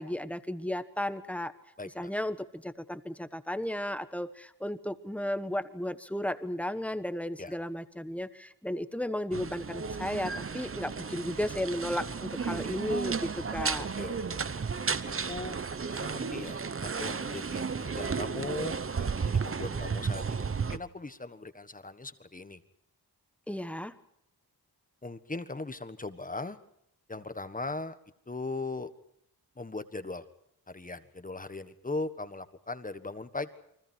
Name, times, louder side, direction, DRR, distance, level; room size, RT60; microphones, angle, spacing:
voice 1, 0.0-1.5 1.9-13.9 23.5-24.0, left 1 dB, 5° left, 11 dB, 1.3 m, -34 dB
voice 2, 1.8-2.1 7.4-7.5 14.0-14.6 15.0-15.6 15.9-22.6 25.0-26.6 27.1-28.0 28.3-28.9 29.6-30.2 30.7-33.5, left 3 dB, 20° left, 10 dB, 1.5 m, -39 dB
sound 1, 9.3-20.8, right 5 dB, 35° right, 1.0 m, -33 dB
29.5 x 24.5 x 4.5 m, 0.74 s
wide cardioid pair, 170°, 40 cm